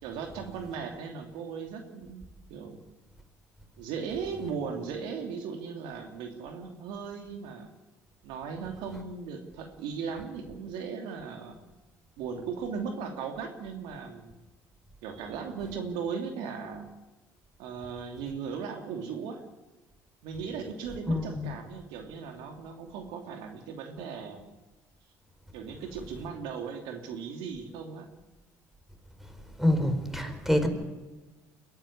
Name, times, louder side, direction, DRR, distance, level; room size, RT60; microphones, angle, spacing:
voice 1, 0.0-2.2 2.5-2.8 3.8-7.7 8.2-11.6 12.2-14.4 15.0-16.8 17.6-19.4 20.2-24.4 25.5-28.1, right 6 dB, 75° right, 4 dB, 2.7 m, -37 dB
voice 2, 21.1-21.5 29.6-30.7, left 1 dB, 5° right, 7 dB, 4.9 m, -26 dB
22.5 x 14.5 x 9.9 m, 1.1 s
hypercardioid pair, 65°, 8 cm